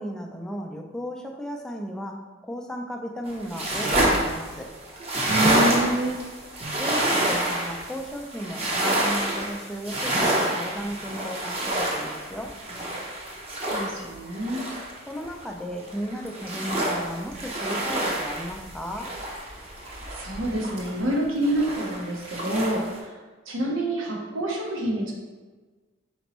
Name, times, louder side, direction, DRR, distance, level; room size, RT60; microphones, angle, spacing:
voice 1, 0.0-4.7 6.8-12.5 15.1-19.1, equal, 5° left, 1 dB, 0.3 m, -35 dB
sound 1, 3.3-15.5 15.8-21.1 21.4-23.0, right 1 dB, 30° right, 0.7 m, -28 dB
voice 2, 5.2-6.2 13.5-14.6 20.1-23.2 23.5-25.1, right 1 dB, 75° right, -1 dB, 0.9 m, -27 dB
4.3 x 4.0 x 3.0 m, 1.3 s
head